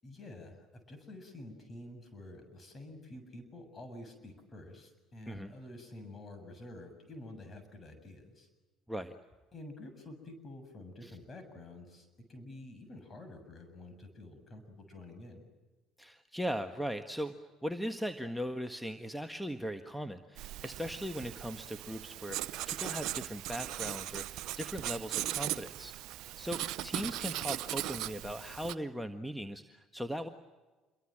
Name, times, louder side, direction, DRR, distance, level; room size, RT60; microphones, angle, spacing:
voice 1, 0.0-8.5 9.5-15.4, left 1 dB, 35° left, 8 dB, 7.3 m, -49 dB
voice 2, 16.0-17.4 17.6-25.9 26.4-30.3, equal, ahead, 6 dB, 1.5 m, -39 dB
Writing, 20.4-28.7, right 14 dB, 65° right, 0.8 m, -38 dB
27.5 x 23.0 x 7.7 m, 1.3 s
hypercardioid pair, 60°, 0 cm